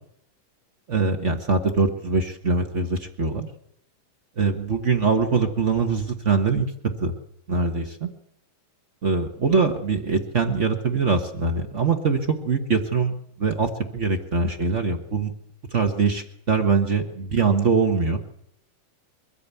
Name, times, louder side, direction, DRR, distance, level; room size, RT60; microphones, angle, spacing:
voice 1, 0.9-3.5 4.4-6.7 7.0-7.1 7.5-8.1 9.0-15.3 15.7-18.2, right 4 dB, 80° right, 4 dB, 0.6 m, -23 dB
23.0 x 14.5 x 8.4 m, 0.73 s
omnidirectional pair, 3.9 m